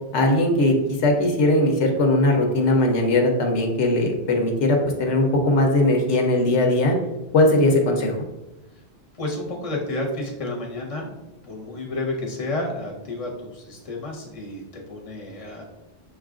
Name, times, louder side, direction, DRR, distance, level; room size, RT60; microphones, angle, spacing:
voice 1, 0.1-6.9 7.3-8.2, left 1 dB, 80° left, 3 dB, 1.1 m, -19 dB
voice 2, 9.1-15.6, left 2 dB, 30° left, -1 dB, 1.0 m, -31 dB
6.0 x 2.4 x 3.6 m, 0.98 s
omnidirectional pair, 1.2 m